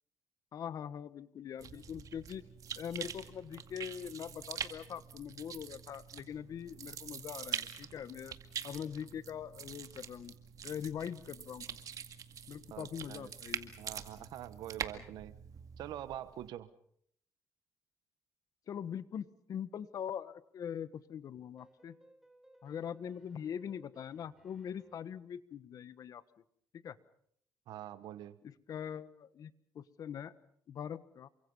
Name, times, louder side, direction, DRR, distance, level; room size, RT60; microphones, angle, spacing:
voice 1, 0.5-2.5 2.8-8.3 8.6-10.3 10.6-11.8 12.5-13.7 18.7-22.0 22.6-26.2 26.7-27.0 28.4-30.3 30.7-31.3, left 8 dB, 60° left, 14 dB, 1.4 m, -42 dB
sound 1, 1.6-16.5, right 8 dB, 55° right, 2.1 m, -45 dB
voice 2, 12.7-13.3 13.8-15.4 15.8-16.7 27.7-28.4, right 12 dB, 80° right, 14 dB, 1.1 m, -45 dB
sound 2, 21.6-25.2, right 1 dB, 5° right, 4.1 m, -64 dB
29.0 x 24.5 x 5.5 m, 0.67 s
cardioid pair, 100°, 7 cm